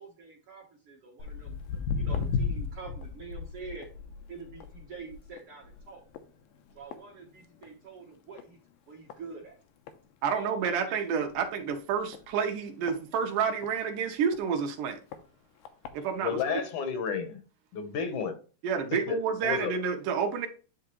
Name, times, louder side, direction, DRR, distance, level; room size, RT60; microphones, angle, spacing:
voice 1, 0.0-3.9 4.3-6.0 6.7-8.6 8.9-9.6 10.3-10.9, right 4 dB, 60° right, 1.6 m, -46 dB
Walk footsteps, 1.2-7.9 8.2-8.5 9.1-9.2 9.9-10.0 10.3-10.4 10.6-10.7 11.3-11.5 12.1-13.7 14.3-14.4 15.1-15.2 15.6-15.9 16.6-16.7, left 5 dB, 90° left, 2.5 m, -35 dB
voice 2, 10.2-15.0 15.9-16.6 18.6-20.5, right 6 dB, 75° right, 2.5 m, -29 dB
voice 3, 16.2-17.4 17.7-18.4 19.1-19.2 19.4-19.7, left 6 dB, 70° left, 2.2 m, -31 dB
10.0 x 3.7 x 3.0 m
omnidirectional pair, 3.8 m